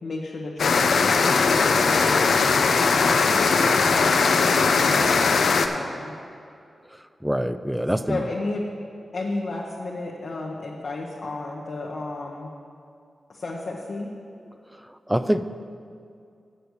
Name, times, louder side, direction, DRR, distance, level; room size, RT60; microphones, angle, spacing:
voice 1, 0.0-2.3 3.0-3.6 3.9-6.1 8.1-8.7 9.1-12.5 13.3-14.1, left 2 dB, 65° left, -3 dB, 1.0 m, -33 dB
sound 1, 0.6-5.7, left 4 dB, 80° left, 0.5 m, -19 dB
voice 2, 7.2-8.2 15.1-15.4, equal, 5° right, 11 dB, 0.4 m, -24 dB
6.9 x 6.6 x 7.9 m, 2.4 s
cardioid pair, 55°, 0 cm